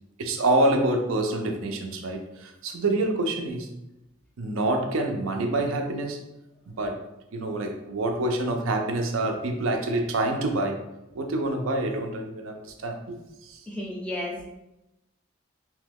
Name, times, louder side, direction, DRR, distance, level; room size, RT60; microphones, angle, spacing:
voice 1, 0.2-3.7 4.4-6.2 6.7-7.0 7.3-10.8 11.1-13.6, right 2 dB, 80° right, 4 dB, 0.5 m, -27 dB
voice 2, 13.7-14.4, left 1 dB, 5° left, -2 dB, 0.4 m, -32 dB
2.8 x 2.2 x 3.4 m, 0.91 s
head